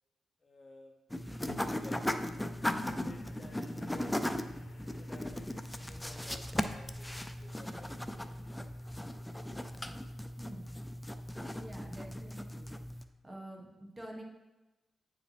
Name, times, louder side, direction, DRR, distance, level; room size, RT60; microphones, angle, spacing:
voice 1, 0.4-0.9 1.6-2.5 2.8-4.3 4.8-8.3 9.5-9.8, left 2 dB, 30° left, 2 dB, 0.8 m, -55 dB
sound 1, 1.1-13.0, left 1 dB, 5° left, 0.4 m, -38 dB
sound 2, 1.5-12.0 12.6-12.7, left 3 dB, 85° left, 1.0 m, -58 dB
voice 2, 10.4-10.8 11.6-12.8 13.2-14.2, right 1 dB, 25° right, -1 dB, 1.4 m, -47 dB
9.0 x 5.0 x 3.3 m, 1.1 s
cardioid pair, 110°, 0 cm